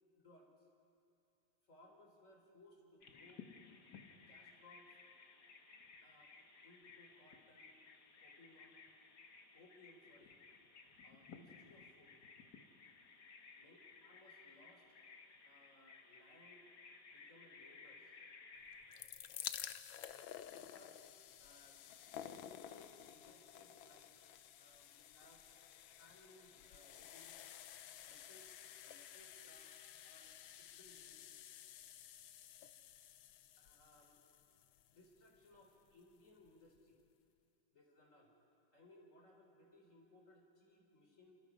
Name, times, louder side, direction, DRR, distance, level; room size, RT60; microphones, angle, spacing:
voice 1, 0.2-0.5 1.7-3.5 4.3-5.0 6.0-7.7 8.2-8.8 9.5-10.4 11.0-12.2 13.6-14.9 15.4-16.7 17.1-18.1 20.5-21.0 21.4-21.8 22.2-24.2 24.6-25.5 25.9-27.4 28.0-28.5 28.8-29.8 30.0-31.2 33.6-34.4 34.9-37.0 37.7-38.3 38.7-41.4, left 1 dB, 40° left, 1 dB, 4.0 m, -65 dB
Bird vocalization bird call bird song, 3.0-19.1, left 5 dB, 60° left, 2.0 m, -59 dB
sound 1, 18.7-35.7 36.5-36.6 36.8-36.9, left 10 dB, 85° left, 1.5 m, -53 dB
29.0 x 28.0 x 4.9 m, 2.6 s
omnidirectional pair, 2.1 m